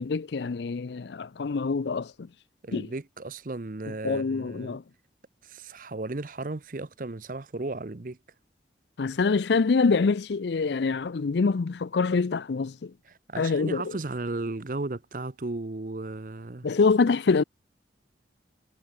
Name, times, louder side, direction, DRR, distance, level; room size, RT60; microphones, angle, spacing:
voice 1, 0.0-2.3 2.7-2.9 4.0-4.8 9.0-12.9 13.4-13.8 16.6-17.4, left 4 dB, 70° left, 0.5 m, -25 dB
voice 2, 2.6-4.8 5.4-8.2 13.1-16.7, right 2 dB, 45° right, 0.8 m, -35 dB
head